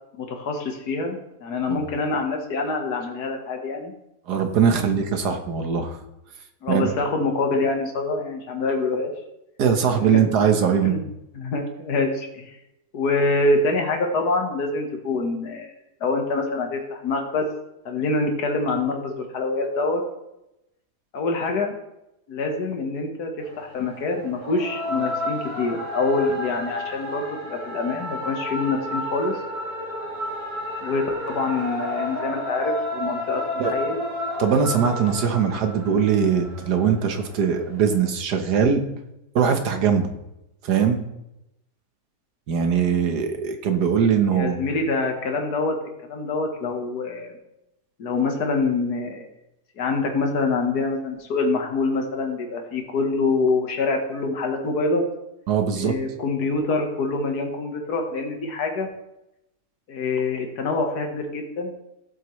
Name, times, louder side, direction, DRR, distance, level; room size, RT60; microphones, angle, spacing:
voice 1, 0.2-3.9 4.7-4.9 6.6-9.1 9.9-10.2 10.8-11.0 11.4-12.5 12.9-15.7 16.0-17.5 17.9-20.0 21.1-21.7 22.3-23.3 23.6-29.3 30.8-34.0 44.3-45.8 46.0-47.4 48.0-49.3 49.8-55.0 55.7-58.9 59.9-61.7, left 3 dB, 80° left, 3 dB, 1.9 m, -25 dB
voice 2, 4.3-6.0 6.7-6.9 9.6-11.0 33.6-33.7 34.4-38.8 39.4-40.1 40.6-41.0 42.5-44.6 55.5-56.0, right 7 dB, 85° right, 6 dB, 1.8 m, -21 dB
sound 1, 23.4-38.1, left 1 dB, 70° right, 2.4 m, -32 dB
15.5 x 8.0 x 3.2 m, 0.88 s
omnidirectional pair, 1.7 m